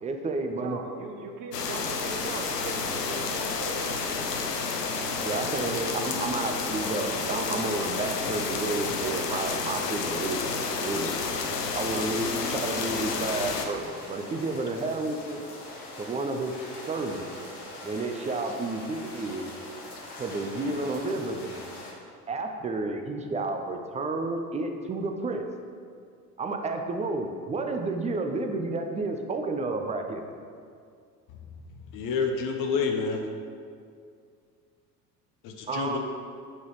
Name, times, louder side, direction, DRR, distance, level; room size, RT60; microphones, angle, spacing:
voice 1, 0.0-0.8 5.2-10.5 10.8-11.2 11.7-15.4 16.0-16.5 16.9-17.3 17.8-19.6 20.2-21.7 22.3-25.4 26.4-30.2 35.7-36.0, right 3 dB, 15° right, 5 dB, 0.5 m, -31 dB
voice 2, 0.6-4.0 11.5-11.6, right 4 dB, 40° right, 3 dB, 1.0 m, -39 dB
sound 1, 1.5-13.7, left 4 dB, 85° left, 0.7 m, -30 dB
sound 2, 2.5-21.9, left 2 dB, 65° left, 1.5 m, -44 dB
voice 3, 31.9-33.2 35.4-36.0, left 5 dB, 45° left, 3 dB, 0.8 m, -28 dB
7.3 x 4.1 x 4.7 m, 2.2 s
figure-of-eight pair, 65°, 47 cm